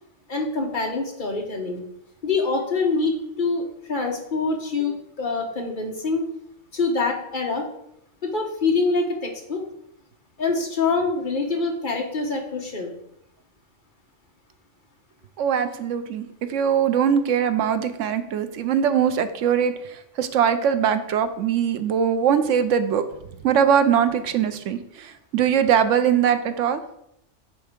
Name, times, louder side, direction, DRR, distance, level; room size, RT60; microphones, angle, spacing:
voice 1, 0.3-1.8 2.2-6.2 6.7-7.7 8.2-9.6 10.4-12.9, left 3 dB, 45° left, 1 dB, 1.3 m, -25 dB
voice 2, 15.4-16.2 16.5-19.7 20.2-23.0 23.4-24.8 25.3-26.8, right 8 dB, 85° right, 10 dB, 1.0 m, -21 dB
9.1 x 3.5 x 5.1 m, 0.78 s
omnidirectional pair, 1.2 m